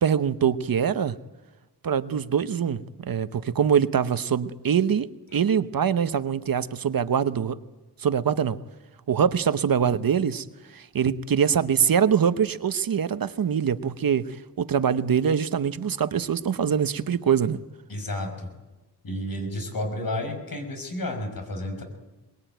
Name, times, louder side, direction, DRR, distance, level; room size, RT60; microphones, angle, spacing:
voice 1, 0.0-1.2 1.8-7.6 8.0-8.6 9.1-10.4 10.7-17.6, right 7 dB, 60° right, 12 dB, 0.9 m, -24 dB
voice 2, 17.9-18.5 19.0-21.8, left 1 dB, 60° left, 5 dB, 5.7 m, -31 dB
23.0 x 21.0 x 9.2 m, 1.1 s
wide cardioid pair, 165°, 39 cm